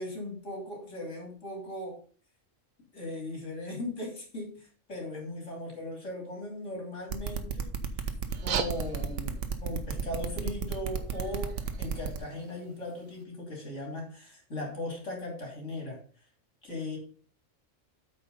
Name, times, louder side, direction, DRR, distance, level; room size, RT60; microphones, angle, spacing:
voice 1, 0.0-2.0 2.9-7.7 8.4-16.0 16.6-17.0, left 1 dB, 65° left, 0 dB, 3.5 m, -38 dB
sound 1, 7.1-12.2, right 7 dB, 70° right, 1.3 m, -32 dB
sound 2, 8.2-13.2, right 8 dB, 90° right, 1.2 m, -41 dB
8.4 x 4.8 x 5.3 m, 0.42 s
omnidirectional pair, 1.4 m